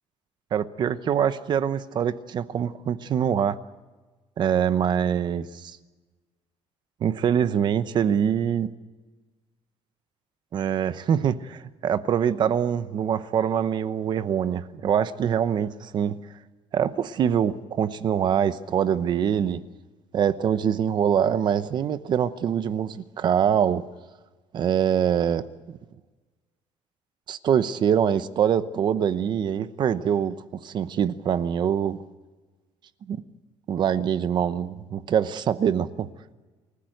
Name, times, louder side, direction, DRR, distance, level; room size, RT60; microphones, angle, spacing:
voice 1, 0.5-3.6 4.4-5.8 7.0-8.7 10.5-16.1 16.7-19.6 20.1-23.8 24.5-25.8 27.3-30.4 30.6-32.0 33.1-33.2 33.7-36.1, right 8 dB, 40° right, 13 dB, 0.9 m, -24 dB
29.0 x 15.0 x 7.9 m, 1.3 s
cardioid pair, 175°, 12 cm